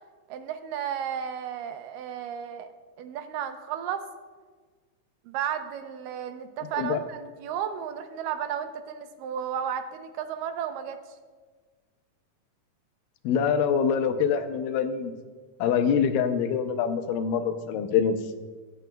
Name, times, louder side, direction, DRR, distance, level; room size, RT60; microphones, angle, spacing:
voice 1, 0.3-4.0 5.3-11.0, right 9 dB, 85° right, 8 dB, 2.4 m, -33 dB
voice 2, 13.2-15.1 15.6-18.4, left 7 dB, 90° left, 8 dB, 2.4 m, -25 dB
24.5 x 9.1 x 2.3 m, 1.5 s
omnidirectional pair, 3.8 m